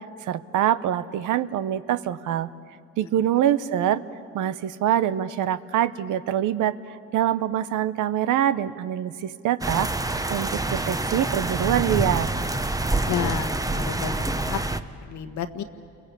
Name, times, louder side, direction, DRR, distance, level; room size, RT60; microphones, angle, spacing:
voice 1, 0.2-2.5 3.0-4.0 4.3-9.9 10.3-12.3, right 11 dB, 85° right, 14 dB, 0.9 m, -24 dB
sound 1, 9.6-14.8, right 2 dB, 10° right, 0.9 m, -26 dB
voice 2, 13.1-14.6 15.0-15.6, left 8 dB, 70° left, 10 dB, 1.5 m, -31 dB
29.5 x 22.5 x 8.4 m, 2.5 s
cardioid pair, 90°, 30 cm